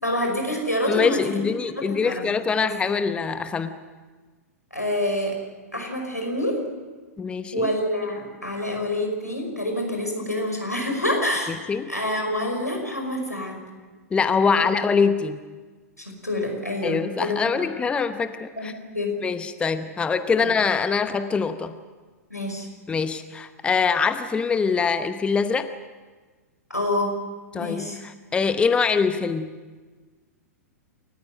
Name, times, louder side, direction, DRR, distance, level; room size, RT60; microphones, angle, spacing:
voice 1, 0.0-1.5 1.8-2.2 2.6-2.7 4.7-5.4 5.7-6.6 7.5-13.6 16.0-17.7 18.6-19.1 20.4-20.5 22.3-22.7 26.7-27.2 27.6-28.0, left 1 dB, 85° left, 2 dB, 5.5 m, -27 dB
voice 2, 0.9-3.7 7.2-7.7 11.5-11.9 14.1-15.4 16.8-18.7 19.2-21.7 22.9-25.7 27.5-29.5, left 5 dB, 10° left, 11 dB, 0.9 m, -24 dB
28.0 x 14.5 x 9.2 m, 1.4 s
figure-of-eight pair, 100°, 9 cm